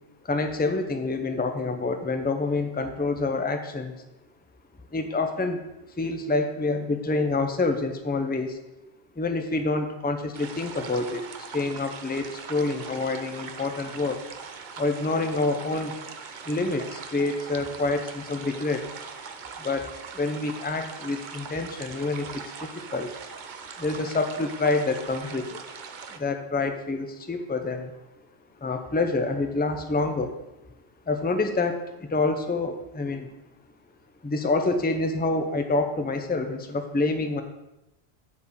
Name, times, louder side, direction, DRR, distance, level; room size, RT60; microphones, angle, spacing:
voice 1, 0.2-3.9 4.9-5.6 6.0-8.6 9.2-11.3 11.5-14.2 14.8-15.9 16.4-18.9 19.6-23.1 23.8-25.6 26.1-27.9 28.6-30.3 31.1-33.3 34.2-37.4, left 3 dB, 10° left, 6 dB, 0.6 m, -27 dB
sound 1, 10.3-26.2, right 5 dB, 55° right, 0.8 m, -41 dB
8.3 x 5.0 x 6.5 m, 0.96 s
omnidirectional pair, 1.0 m